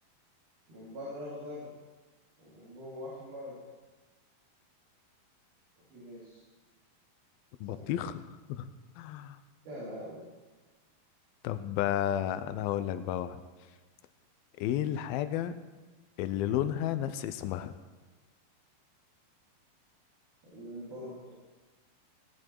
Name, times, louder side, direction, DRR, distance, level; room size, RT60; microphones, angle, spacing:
voice 1, 0.7-1.7 2.4-3.6 5.9-6.4 7.7-7.9 9.6-10.3 20.5-21.3, left 1 dB, 75° right, -6 dB, 4.8 m, -43 dB
voice 2, 7.6-9.4 11.4-13.4 14.6-15.5 16.2-17.7, left 11 dB, 80° left, 12 dB, 2.5 m, -32 dB
18.0 x 11.0 x 4.6 m, 1.3 s
omnidirectional pair, 4.3 m